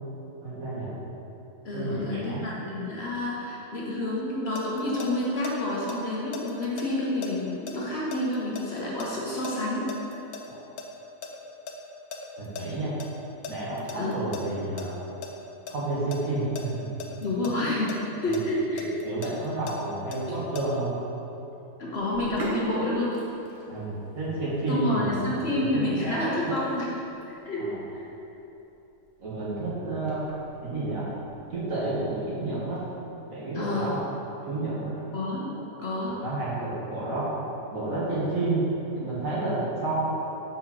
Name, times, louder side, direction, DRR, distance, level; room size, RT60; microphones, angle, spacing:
voice 1, 0.4-0.9 1.7-2.5 10.5-10.6 12.4-12.9 13.5-15.0 15.7-16.9 18.3-18.4 19.0-20.9 23.7-26.5 27.6-27.8 29.2-30.3 30.6-31.1 31.5-32.8 33.3-34.0 34.4-35.0 36.1-37.3 37.7-40.1, right 2 dB, 65° right, -8 dB, 2.0 m, -30 dB
voice 2, 1.6-9.9 14.0-14.2 17.2-18.9 20.3-20.4 21.8-23.1 24.7-26.9 27.3-28.1 33.5-34.0 35.1-35.5 35.8-36.2, left 1 dB, 50° left, -5 dB, 1.1 m, -29 dB
sound 1, 4.2-5.5 5.9-10.5 10.8-12.6 13.0-13.1 13.4-14.9 15.2-15.7 16.1-18.0 18.3-20.6, left 5 dB, 85° left, 1.2 m, -38 dB
Sink (filling or washing), 22.0-32.8, right 2 dB, 30° right, 1.0 m, -43 dB
5.0 x 4.4 x 5.9 m, 2.9 s
omnidirectional pair, 1.5 m